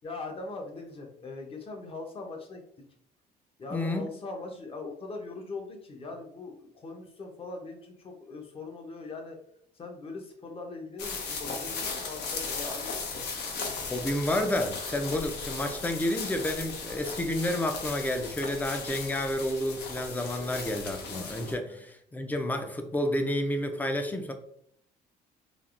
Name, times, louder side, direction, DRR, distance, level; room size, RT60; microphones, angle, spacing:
voice 1, 0.0-2.6 3.6-9.4 9.7-13.3 21.7-21.8, left 3 dB, 35° left, 2 dB, 0.7 m, -41 dB
voice 2, 3.7-4.1 13.9-24.3, left 1 dB, 10° left, 6 dB, 0.4 m, -30 dB
sound 1, 11.0-21.5, left 4 dB, 75° left, 0.7 m, -37 dB
3.3 x 2.4 x 2.4 m, 0.67 s
cardioid pair, 110°, 17 cm